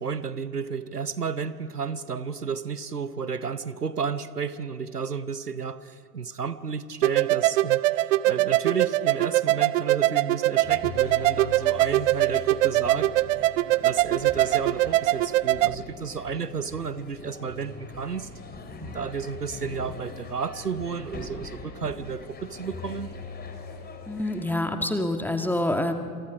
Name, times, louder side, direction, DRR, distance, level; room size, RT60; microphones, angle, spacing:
voice 1, 0.0-7.9 8.2-13.1 13.7-18.3 18.8-23.1, right 6 dB, 90° right, 15 dB, 0.9 m, -32 dB
sound 1, 7.0-15.7, right 16 dB, 55° right, 0.6 m, -22 dB
sound 2, 10.6-24.6, left 5 dB, 20° left, 3.6 m, -42 dB
voice 2, 24.1-25.9, left 1 dB, 5° left, 6 dB, 1.8 m, -26 dB
28.0 x 27.5 x 5.1 m, 2.3 s
figure-of-eight pair, 75°, 45 cm